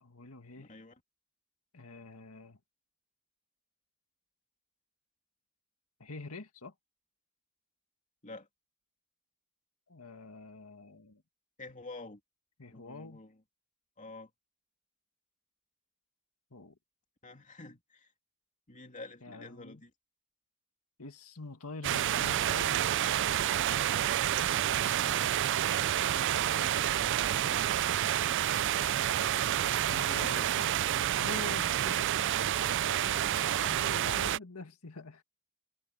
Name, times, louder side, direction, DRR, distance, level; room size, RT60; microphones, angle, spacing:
voice 1, 0.0-0.7 1.7-2.6 6.0-6.7 9.9-11.2 12.6-13.2 16.5-16.8 19.2-19.8 21.0-23.2 26.9-27.7 29.9-30.8 31.2-35.2, left 3 dB, 85° left, 2.1 m, -46 dB
voice 2, 0.6-0.9 8.2-8.5 11.6-12.2 12.7-13.3 14.0-14.3 17.2-18.1 18.7-19.9 25.0-25.4 30.2-30.5 33.1-33.3, left 2 dB, 35° left, 2.9 m, -48 dB
sound 1, 21.8-34.4, right 11 dB, 55° right, 0.4 m, -29 dB
head